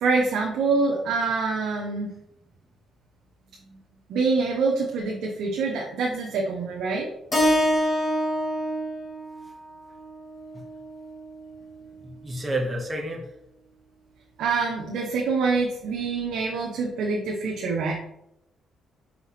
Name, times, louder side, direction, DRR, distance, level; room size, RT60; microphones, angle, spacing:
voice 1, 0.0-2.1 4.1-7.1 14.4-17.9, right 4 dB, 80° right, -1 dB, 1.0 m, -25 dB
Keyboard (musical), 7.3-11.5, equal, 25° left, 2.2 m, -27 dB
voice 2, 12.0-13.3, right 1 dB, 20° right, 0 dB, 1.1 m, -30 dB
5.2 x 4.5 x 4.3 m, 0.81 s
cardioid pair, 90°, 0 cm